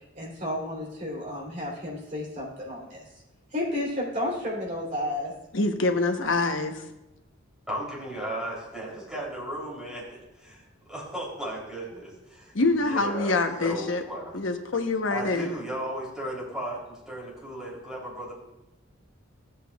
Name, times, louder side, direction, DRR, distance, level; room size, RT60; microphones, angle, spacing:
voice 1, 0.1-3.0 3.5-5.3, left 1 dB, 40° right, -5 dB, 3.2 m, -32 dB
voice 2, 5.5-6.7 12.5-14.0 14.3-15.5, left 3 dB, 75° left, 5 dB, 0.9 m, -25 dB
voice 3, 7.7-10.6 10.9-14.3 15.1-18.3, right 1 dB, 5° right, -6 dB, 3.2 m, -36 dB
15.0 x 8.3 x 2.3 m, 0.96 s
head